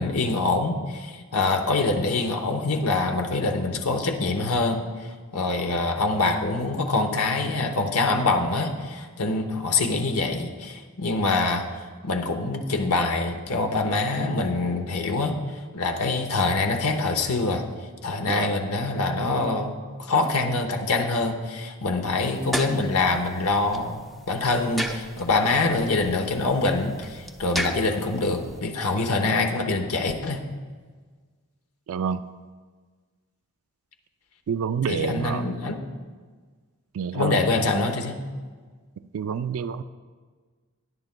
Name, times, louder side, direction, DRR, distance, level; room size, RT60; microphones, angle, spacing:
voice 1, 0.0-11.7 12.0-17.6 18.0-30.4 34.9-35.8 37.1-38.2, left 3 dB, 75° left, 4 dB, 1.0 m, -25 dB
sound 1, 22.2-28.6, equal, ahead, 0.6 m, -36 dB
voice 2, 31.9-32.3 34.5-35.4 36.9-37.4 39.1-39.8, right 6 dB, 65° right, 12 dB, 0.3 m, -28 dB
18.0 x 10.5 x 2.2 m, 1.5 s
head